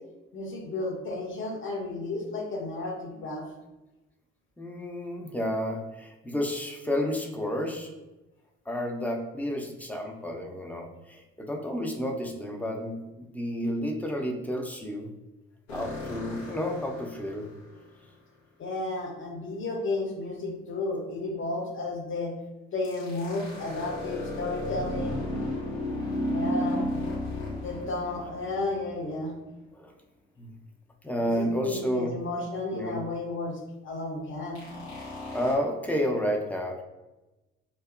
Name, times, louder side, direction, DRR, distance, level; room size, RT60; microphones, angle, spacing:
voice 1, 0.3-3.5 18.6-22.3 22.7-25.2 26.3-26.9 27.5-29.3 31.2-34.6, left 2 dB, 40° left, 1 dB, 0.8 m, -33 dB
voice 2, 4.6-7.9 8.7-15.1 15.7-17.5 29.7-29.9 30.4-30.5 31.0-32.1 32.7-33.0 35.3-36.8, equal, 5° left, 1 dB, 0.5 m, -31 dB
sound 1, 15.7-17.8 22.8-29.2 34.5-35.5, left 1 dB, 85° left, 0.7 m, -34 dB
2.7 x 2.2 x 2.4 m, 1.0 s
hypercardioid pair, 50°, 32 cm